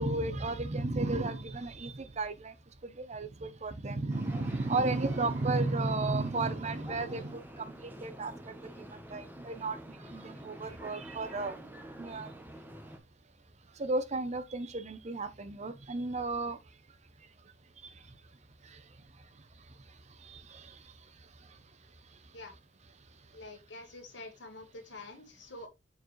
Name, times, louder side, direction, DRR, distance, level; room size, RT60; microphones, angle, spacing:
voice 1, 0.0-2.5 3.0-7.4 8.0-8.3 9.1-9.8 10.1-11.5 12.0-12.3 13.8-16.6, right 2 dB, 40° right, 0.7 m, -33 dB
sound 1, 4.1-13.0, right 1 dB, 10° right, 0.9 m, -48 dB
voice 2, 23.3-25.7, left 2 dB, 75° left, 1.8 m, -47 dB
6.8 x 4.6 x 3.1 m
head